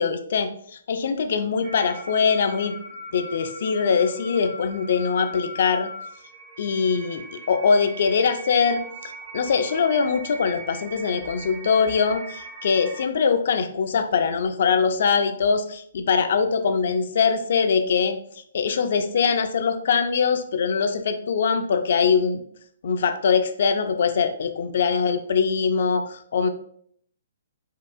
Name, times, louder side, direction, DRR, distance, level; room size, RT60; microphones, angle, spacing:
voice 1, 0.0-2.8 3.1-5.9 6.6-18.2 18.5-22.4 22.8-26.5, left 6 dB, 55° left, 7 dB, 0.4 m, -22 dB
sound 1, 1.6-13.1, right 1 dB, 25° right, 0.7 m, -40 dB
4.5 x 2.4 x 2.4 m, 0.64 s
figure-of-eight pair, 125°, 0 cm